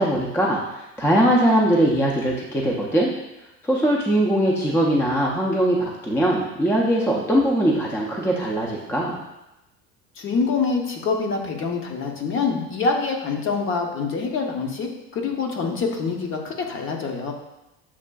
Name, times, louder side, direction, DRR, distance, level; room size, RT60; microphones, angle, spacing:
voice 1, 0.0-3.1 3.6-9.2, right 1 dB, 5° left, -2 dB, 0.4 m, -21 dB
voice 2, 10.2-17.3, left 4 dB, 40° left, 2 dB, 0.7 m, -25 dB
7.2 x 2.4 x 2.2 m, 0.94 s
supercardioid pair, 125°, 33 cm